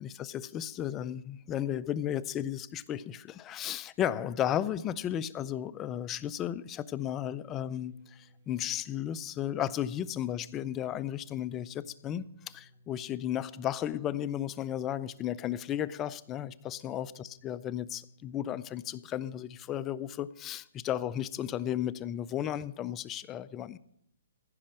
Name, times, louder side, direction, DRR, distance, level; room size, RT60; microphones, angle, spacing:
voice 1, 0.0-23.8, left 11 dB, 20° left, 0.4 m, -34 dB
sound 1, 7.4-20.2, left 1 dB, 55° right, 1.5 m, -62 dB
15.5 x 5.3 x 8.8 m
hypercardioid pair, 150°, 0 cm